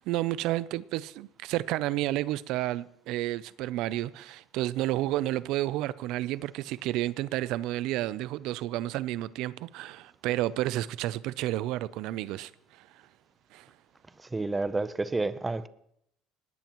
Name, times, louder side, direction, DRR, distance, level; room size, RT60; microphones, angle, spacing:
voice 1, 0.0-12.5 12.8-12.9 13.5-13.7, right 15 dB, 65° right, 0.4 m, -31 dB
voice 2, 14.3-15.7, right 3 dB, 15° right, 0.6 m, -29 dB
19.5 x 18.0 x 3.0 m
cardioid pair, 135°, 0 cm